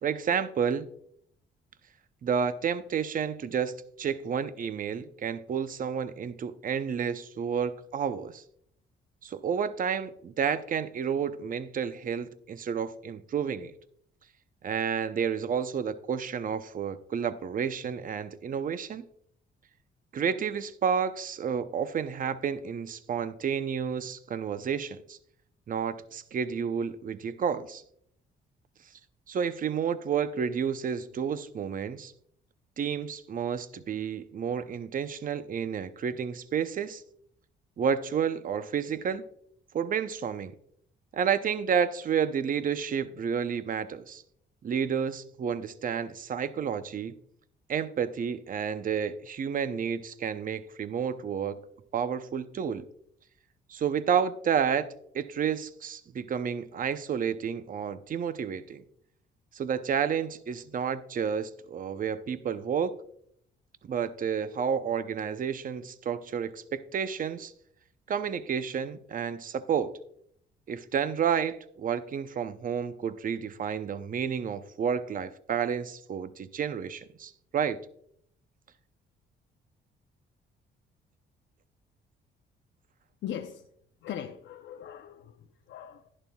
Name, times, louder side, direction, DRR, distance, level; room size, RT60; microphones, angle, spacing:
voice 1, 0.0-0.9 2.2-8.4 9.2-13.7 14.6-19.0 20.1-25.2 25.7-27.8 29.3-32.1 32.8-37.0 37.8-39.2 39.7-40.5 41.1-44.2 44.6-47.2 47.7-51.6 51.9-52.9 53.7-54.9 55.1-58.8 59.5-62.9 63.9-67.5 68.1-70.0 70.7-77.8, right 7 dB, 45° right, 0.6 m, -30 dB
voice 2, 83.2-83.7 84.0-86.1, left 10 dB, 70° left, 0.6 m, -40 dB
11.0 x 11.0 x 2.3 m
cardioid pair, 90°, 20 cm